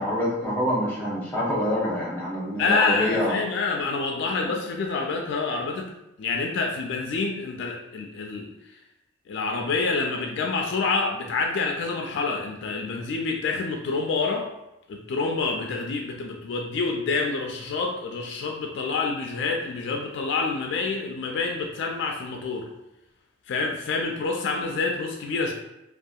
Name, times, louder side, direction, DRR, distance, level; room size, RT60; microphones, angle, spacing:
voice 1, 0.0-3.4, left 1 dB, 10° left, -6 dB, 0.7 m, -26 dB
voice 2, 2.6-5.9 6.2-8.5 9.3-14.5 14.9-22.7 23.5-25.5, left 4 dB, 65° left, 1 dB, 0.3 m, -27 dB
2.7 x 2.3 x 2.3 m, 0.91 s
head